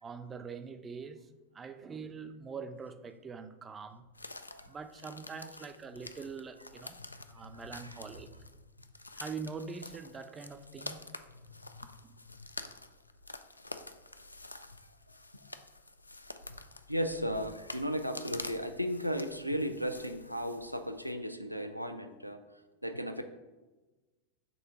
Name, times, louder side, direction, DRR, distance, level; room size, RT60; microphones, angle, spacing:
voice 1, 0.0-1.3 1.5-4.0 4.7-7.0 7.3-8.3 9.1-11.2 12.0-12.2, right 5 dB, 20° right, 0.4 m, -44 dB
sound 1, 4.2-21.1, left 2 dB, 80° left, 0.3 m, -48 dB
voice 2, 7.5-8.0 14.6-14.7 16.9-22.4 22.8-23.2, equal, 90° right, 0.4 m, -35 dB
5.4 x 3.8 x 5.4 m
figure-of-eight pair, 90°, 0 cm